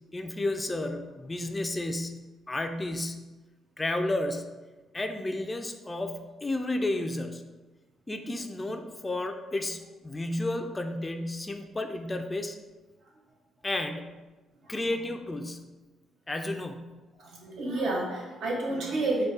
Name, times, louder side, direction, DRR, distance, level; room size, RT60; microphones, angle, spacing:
voice 1, 0.1-3.3 3.8-4.5 4.9-7.4 8.1-12.6 13.6-14.2 14.7-15.7 16.3-17.0, left 2 dB, 20° left, 6 dB, 0.3 m, -32 dB
voice 2, 17.2-19.3, right 2 dB, 75° right, -2 dB, 0.9 m, -30 dB
3.7 x 2.2 x 3.9 m, 1.2 s
cardioid pair, 90°, 0 cm